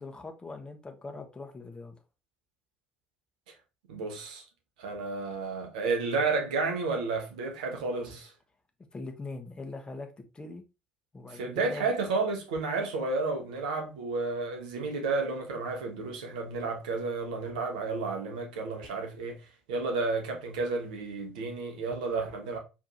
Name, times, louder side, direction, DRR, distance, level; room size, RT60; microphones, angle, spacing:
voice 1, 0.0-2.0 8.9-10.6 11.1-11.9, left 3 dB, 20° left, 1.2 m, -41 dB
voice 2, 3.9-4.4 4.8-8.3 11.3-19.4 19.7-22.6, right 3 dB, 70° right, 1.3 m, -31 dB
4.7 x 3.6 x 3.0 m
figure-of-eight pair, 55°, 5 cm